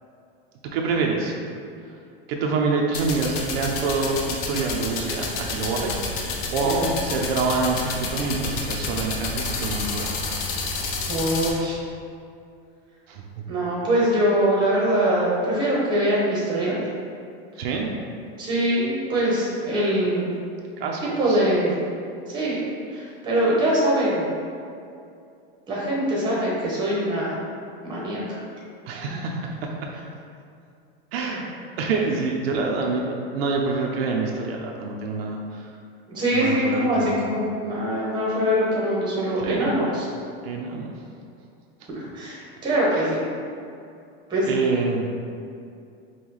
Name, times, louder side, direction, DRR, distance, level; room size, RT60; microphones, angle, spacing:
voice 1, 0.6-1.4 2.3-6.0 6.5-10.1 13.1-13.2 17.6-17.9 20.8-21.4 28.9-29.9 31.1-31.4 31.8-35.7 36.3-37.3 39.4-39.8 40.4-40.9 42.9-43.1 44.5-45.1, right 4 dB, 75° right, 0 dB, 0.6 m, -26 dB
sound 1, 2.9-11.5, left 3 dB, 55° left, 0.6 m, -29 dB
voice 2, 11.1-11.8 13.5-16.8 18.4-20.3 21.2-21.7 22.3-22.6 22.9-24.2 25.7-27.4 27.8-28.4 36.1-40.1 41.9-43.2 44.3-44.6, right 1 dB, 15° right, -6 dB, 0.9 m, -23 dB
5.5 x 2.3 x 3.1 m, 2.5 s
supercardioid pair, 155°, 30 cm